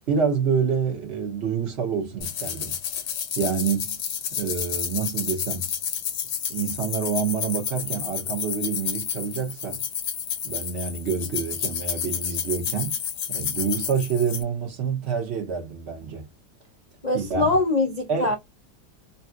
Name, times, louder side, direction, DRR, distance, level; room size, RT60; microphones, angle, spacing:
voice 1, 0.1-2.8 3.4-4.0 4.3-5.7 6.5-9.8 10.4-13.0 13.3-16.3 17.1-17.5 18.1-18.4, right 6 dB, 60° right, 0.7 m, -27 dB
sound 1, 2.2-14.4, left 8 dB, 70° left, 1.3 m, -30 dB
voice 2, 17.0-18.4, left 2 dB, 90° left, 0.3 m, -23 dB
3.2 x 2.7 x 2.3 m
omnidirectional pair, 2.0 m